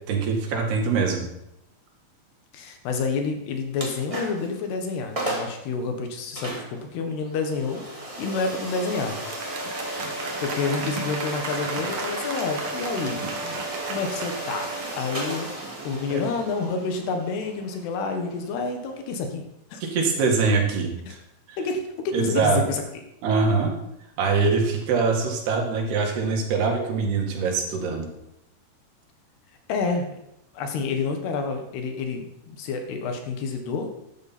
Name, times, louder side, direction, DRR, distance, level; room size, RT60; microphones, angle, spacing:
voice 1, 0.1-1.2 16.1-16.2 19.8-21.2 21.5-21.6 22.1-22.6 23.2-23.7 24.2-28.1, right 4 dB, 80° right, 1 dB, 4.1 m, -23 dB
voice 2, 2.5-9.2 10.4-13.6 13.9-19.5 19.7-19.8 21.1-21.2 21.6-22.8 29.7-30.2 30.6-33.9, left 4 dB, 85° left, 5 dB, 3.6 m, -29 dB
sound 1, 3.7-4.5 4.9-5.0 5.1-5.6 6.3-19.1, right 1 dB, 15° right, 1.4 m, -34 dB
Applause, 9.0-16.0, right 3 dB, 50° right, 1.7 m, -36 dB
13.0 x 10.5 x 4.4 m, 0.82 s
omnidirectional pair, 4.6 m